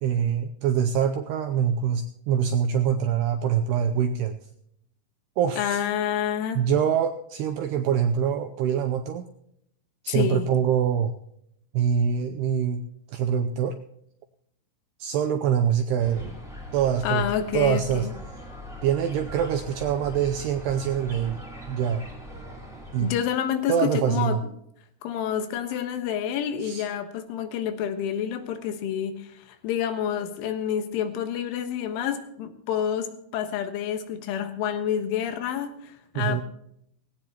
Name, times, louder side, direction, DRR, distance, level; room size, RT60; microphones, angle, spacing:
voice 1, 0.0-4.4 5.4-5.8 6.6-9.3 10.0-11.1 11.7-12.8 13.1-13.8 15.0-16.2 16.7-17.3 17.5-18.1 18.8-21.4 21.7-22.1 22.9-23.1 23.7-24.4 26.6-26.9 36.2-36.4, right 8 dB, 85° right, 6 dB, 2.3 m, -24 dB
voice 2, 5.6-6.7 10.1-10.5 17.0-18.1 23.0-24.4 25.0-36.4, left 9 dB, 80° left, 8 dB, 3.8 m, -28 dB
sound 1, 16.0-23.1, equal, ahead, 3.0 m, -40 dB
18.0 x 17.5 x 3.0 m, 0.74 s
omnidirectional pair, 5.5 m